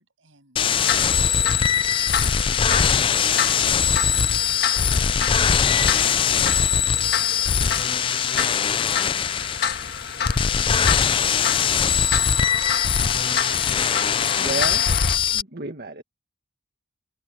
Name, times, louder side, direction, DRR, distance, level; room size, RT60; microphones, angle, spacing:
voice 1, 0.0-2.8 7.0-7.8, right 3 dB, 70° right, 7.5 m, -53 dB
sound 1, 0.6-15.4, left 7 dB, 25° left, 0.3 m, -21 dB
sound 2, 0.7-15.2, left 7 dB, 50° left, 1.4 m, -30 dB
voice 2, 10.1-10.2, equal, 5° right, 6.7 m, -52 dB
voice 3, 14.0-14.9 15.3-16.0, right 3 dB, 50° right, 1.8 m, -32 dB
head